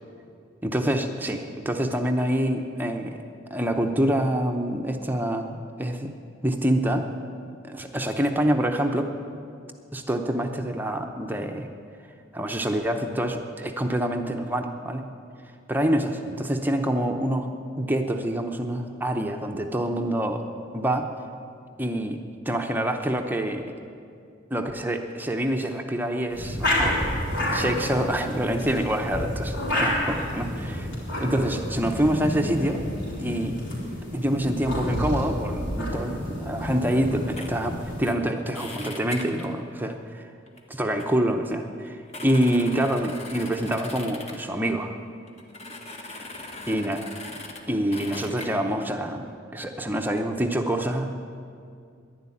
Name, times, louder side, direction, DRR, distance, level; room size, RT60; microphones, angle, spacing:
voice 1, 0.6-3.2 3.5-6.1 6.4-7.1 7.6-9.1 9.9-11.7 12.3-15.1 15.7-17.5 17.8-21.1 21.8-23.7 24.5-27.0 27.5-30.9 31.2-32.8 33.2-33.6 34.1-40.3 40.8-44.9 46.7-47.0 47.7-51.1, right 1 dB, 10° right, 4 dB, 0.7 m, -26 dB
sound 1, 26.3-38.0, left 1 dB, 65° left, 4.1 m, -29 dB
sound 2, 37.4-37.5 38.0-38.2 38.5-39.5 40.5-40.6 41.0-41.1 41.5-41.6 41.9-44.5 45.3-47.6 47.9-48.5, left 2 dB, 35° left, 1.3 m, -40 dB
11.0 x 11.0 x 9.7 m, 2.4 s
head